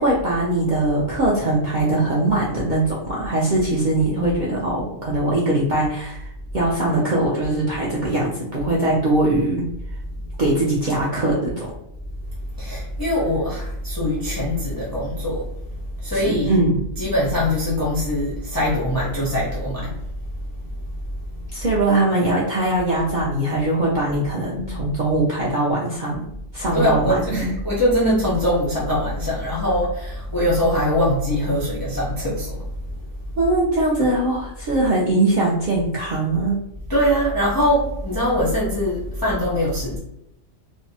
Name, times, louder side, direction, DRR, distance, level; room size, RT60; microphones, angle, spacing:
voice 1, 0.0-6.3 6.5-9.6 10.4-11.7 16.1-16.8 21.5-26.2 26.5-27.5 33.4-36.6, right 2 dB, 55° right, -6 dB, 0.5 m, -21 dB
voice 2, 12.6-15.5 15.7-16.6 16.9-20.1 20.6-20.7 21.3-21.7 26.7-32.7 33.3-33.4 36.9-40.0, equal, 30° left, -6 dB, 0.4 m, -22 dB
2.6 x 2.1 x 2.7 m, 0.81 s
omnidirectional pair, 1.4 m